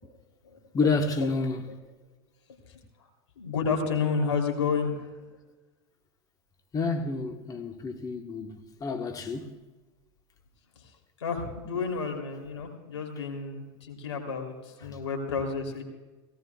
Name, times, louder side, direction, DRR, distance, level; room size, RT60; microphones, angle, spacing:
voice 1, 0.7-1.6 6.7-9.6, left 3 dB, 25° left, 1.2 m, -29 dB
voice 2, 3.4-5.1 11.2-14.5 14.8-15.8, left 5 dB, 85° left, 3.2 m, -30 dB
18.5 x 18.0 x 2.4 m
hypercardioid pair, 95°, 15 cm